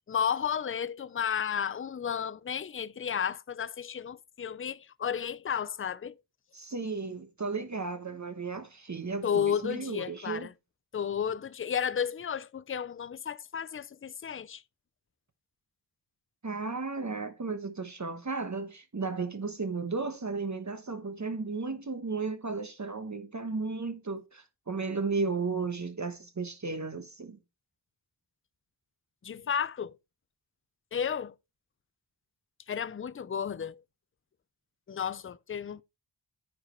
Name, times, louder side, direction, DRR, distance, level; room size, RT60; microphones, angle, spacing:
voice 1, 0.0-6.2 9.2-10.5 10.9-14.6 29.2-29.9 30.9-31.3 32.7-33.8 34.9-35.8, left 8 dB, 30° left, 0.5 m, -32 dB
voice 2, 6.5-10.5 16.4-27.4, right 4 dB, 40° right, 1.1 m, -34 dB
9.9 x 5.0 x 4.4 m
wide cardioid pair, 100°, 46 cm